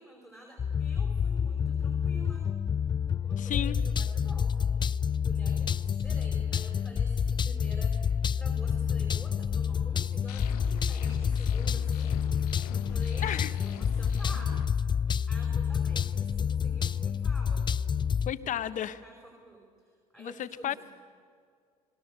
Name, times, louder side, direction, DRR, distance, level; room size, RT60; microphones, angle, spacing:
voice 1, 0.0-2.5 3.2-4.7 5.2-8.0 8.4-14.6 15.2-17.7 18.4-20.8, right 1 dB, ahead, 0 dB, 5.0 m, -49 dB
sound 1, 0.6-18.3, left 7 dB, 25° left, 0.5 m, -28 dB
voice 2, 3.4-3.8 13.2-13.5 18.3-19.0 20.2-20.7, left 11 dB, 40° left, 13 dB, 1.1 m, -33 dB
sound 2, 10.3-14.7, left 15 dB, 75° left, 0.7 m, -45 dB
29.5 x 20.5 x 6.8 m, 2.2 s
hypercardioid pair, 70°, 19 cm